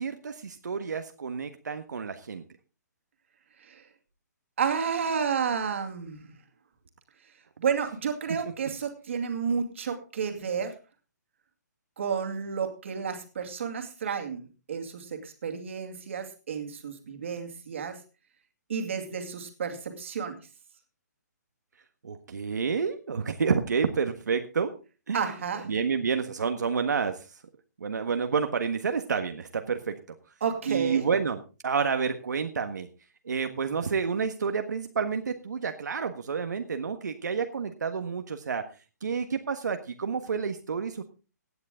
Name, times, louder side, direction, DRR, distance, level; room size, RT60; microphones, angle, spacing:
voice 1, 0.0-2.4 22.0-24.7 25.1-25.2 25.7-27.3 27.8-29.9 30.7-32.9 33.2-38.6 39.0-41.0, right 5 dB, 70° right, 6 dB, 1.5 m, -29 dB
voice 2, 4.6-6.3 7.6-10.8 12.0-14.4 14.7-18.0 18.7-20.4 25.1-25.7 30.4-31.1, right 6 dB, 45° right, 6 dB, 2.4 m, -31 dB
17.0 x 9.7 x 3.8 m, 0.33 s
hypercardioid pair, 175°, 10 cm